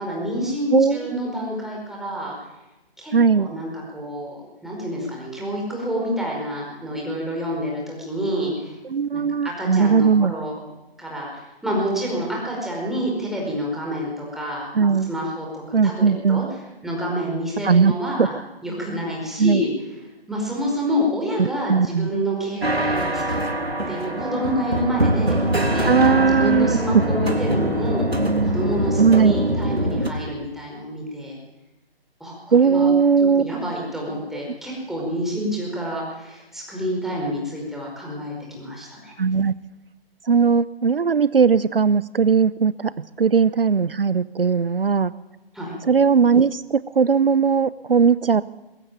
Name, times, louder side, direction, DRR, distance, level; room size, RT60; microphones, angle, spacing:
voice 1, 0.0-2.3 3.0-8.8 9.1-10.6 11.0-16.4 16.8-18.3 18.6-19.7 20.3-23.4 23.9-25.4 25.7-28.1 28.4-31.4 32.2-32.9 33.4-39.1 45.5-45.7, equal, ahead, -3 dB, 4.8 m, -28 dB
voice 2, 0.7-1.2 3.1-3.5 8.8-10.3 14.7-15.1 15.7-16.5 17.6-17.9 18.2-18.3 19.4-19.6 21.4-22.1 25.8-26.8 29.0-29.3 32.5-33.4 39.2-39.5 40.2-42.9 43.2-45.1 45.8-48.4, right 5 dB, 65° right, 17 dB, 0.8 m, -18 dB
sound 1, 22.6-30.1, right 1 dB, 85° right, 3.2 m, -23 dB
22.0 x 15.0 x 9.1 m, 1.0 s
figure-of-eight pair, 140°, 30 cm